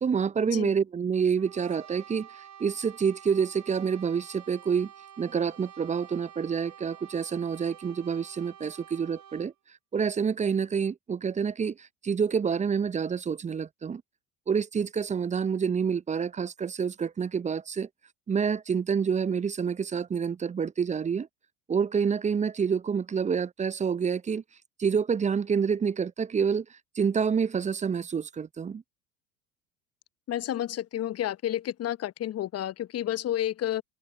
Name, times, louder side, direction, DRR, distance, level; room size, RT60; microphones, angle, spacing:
voice 1, 0.0-4.9 5.2-9.5 9.9-14.0 14.5-17.9 18.3-21.3 21.7-24.4 24.8-28.8, right 6 dB, 15° right, 0.6 m, -28 dB
Brass instrument, 1.4-9.5, right 10 dB, 40° right, 3.6 m, -49 dB
voice 2, 30.3-33.8, left 12 dB, 35° left, 0.9 m, -30 dB
figure-of-eight pair, 70°, 45 cm